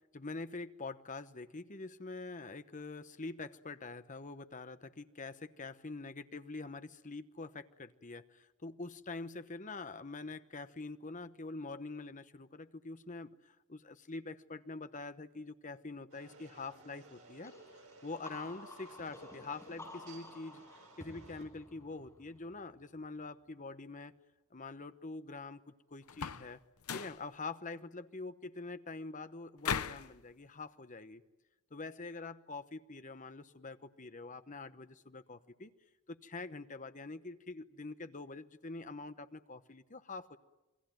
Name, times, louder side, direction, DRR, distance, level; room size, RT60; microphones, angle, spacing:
voice 1, 0.1-17.5 18.0-20.6 21.0-24.1 24.5-26.6 26.9-31.2 31.7-35.7 36.1-40.4, left 3 dB, 35° left, 11 dB, 1.0 m, -45 dB
sound 1, 16.1-21.4, right 3 dB, 70° right, 4.9 m, -59 dB
sound 2, 17.4-23.0, left 2 dB, 15° left, 6.0 m, -52 dB
sound 3, 26.1-26.5 26.8-27.2 29.6-30.1, left 7 dB, 85° left, 0.9 m, -37 dB
28.0 x 22.5 x 9.2 m, 1.0 s
head